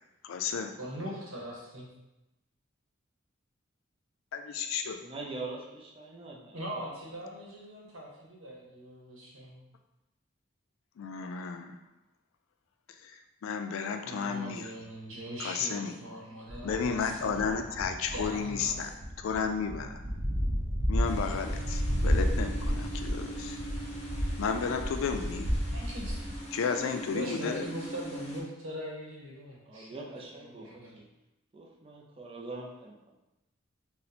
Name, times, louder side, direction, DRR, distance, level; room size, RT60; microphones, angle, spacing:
voice 1, 0.2-0.7 4.3-5.0 11.0-11.8 13.0-14.7 15.4-15.9 16.6-18.9 19.2-20.0 20.9-23.6 24.4-25.5 26.5-27.6, left 5 dB, 85° left, 6 dB, 0.3 m, -33 dB
voice 2, 0.8-1.9 4.6-4.8 6.5-9.6 14.0-17.5 18.1-18.9 24.3-24.4 25.7-26.2 27.1-31.0, equal, 90° right, -3 dB, 1.0 m, -41 dB
voice 3, 5.0-6.9 29.7-31.0 31.5-32.9, right 3 dB, 30° right, -2 dB, 0.4 m, -43 dB
sound 1, 16.5-26.4, equal, 55° right, 0.7 m, -32 dB
sound 2, 21.0-28.4, right 1 dB, 30° left, 0.6 m, -42 dB
2.8 x 2.1 x 4.0 m, 0.95 s
head